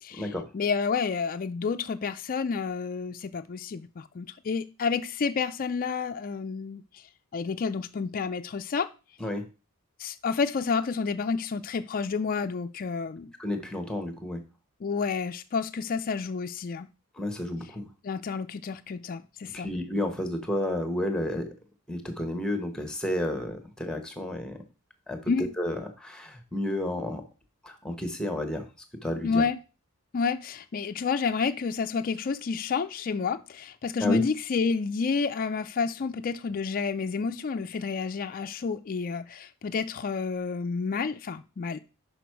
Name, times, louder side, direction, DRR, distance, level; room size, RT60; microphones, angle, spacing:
voice 1, 0.0-6.8 7.3-8.9 10.0-13.3 14.8-16.9 18.0-19.7 25.3-25.5 29.2-29.6 30.1-41.8, left 5 dB, 40° left, 0.4 m, -30 dB
voice 2, 13.4-14.4 17.2-17.9 19.5-21.5 21.9-24.6 25.1-27.2 27.6-28.7 29.0-29.4 34.0-34.2, left 1 dB, 5° left, 1.0 m, -31 dB
6.0 x 5.2 x 4.6 m
head